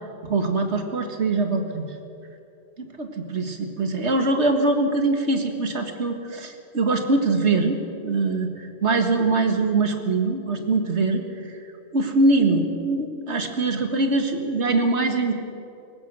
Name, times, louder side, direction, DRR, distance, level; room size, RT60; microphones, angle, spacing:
voice 1, 0.2-1.9 2.8-8.5 8.8-11.6 11.9-15.3, right 3 dB, 85° right, 5 dB, 1.9 m, -23 dB
22.5 x 19.0 x 6.2 m, 2.7 s
omnidirectional pair, 1.1 m